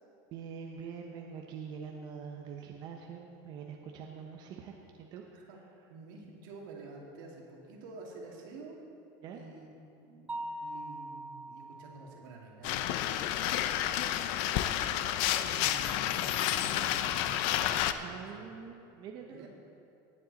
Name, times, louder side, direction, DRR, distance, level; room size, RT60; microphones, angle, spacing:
voice 1, 0.3-5.2 9.2-9.4 18.0-19.5, right 6 dB, 45° right, 1 dB, 0.9 m, -44 dB
voice 2, 5.9-8.8 9.3-9.7 10.0-16.3 16.6-18.5 19.3-19.5, right 3 dB, 80° right, -1 dB, 2.4 m, -50 dB
Mallet percussion, 10.3-12.1, right 1 dB, 15° right, 0.5 m, -41 dB
sound 1, 12.6-17.9, left 12 dB, 60° left, 0.5 m, -30 dB
18.5 x 7.6 x 4.1 m, 2.6 s
supercardioid pair, 145°, 10 cm